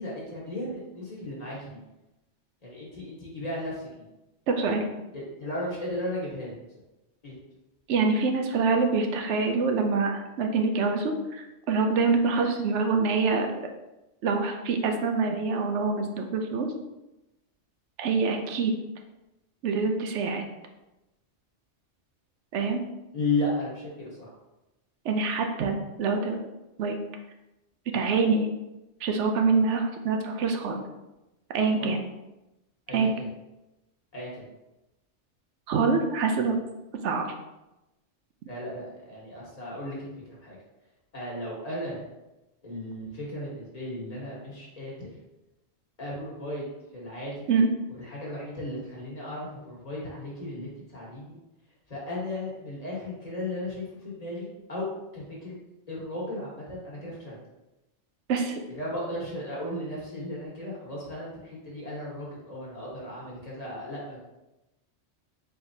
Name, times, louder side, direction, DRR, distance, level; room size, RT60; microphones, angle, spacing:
voice 1, 0.0-1.8 2.6-4.0 5.1-6.6 7.2-7.4 23.1-24.3 31.8-31.9 32.9-33.3 34.1-34.4 38.5-40.6 41.1-42.0 42.6-45.1 46.0-46.6 46.9-47.5 48.0-51.4 51.9-55.5 55.9-57.4 58.7-64.2, left 1 dB, 35° left, -5 dB, 1.3 m, -35 dB
voice 2, 4.5-4.8 7.9-13.6 14.2-16.7 18.0-18.7 19.6-20.5 22.5-22.8 25.0-26.4 26.8-27.0 27.9-28.5 29.0-30.8 31.5-32.0 32.9-33.1 35.7-36.6 37.0-37.3 47.5-47.7 58.3-58.6, right 4 dB, 80° right, 4 dB, 0.9 m, -25 dB
4.4 x 3.6 x 2.7 m, 0.98 s
omnidirectional pair, 1.2 m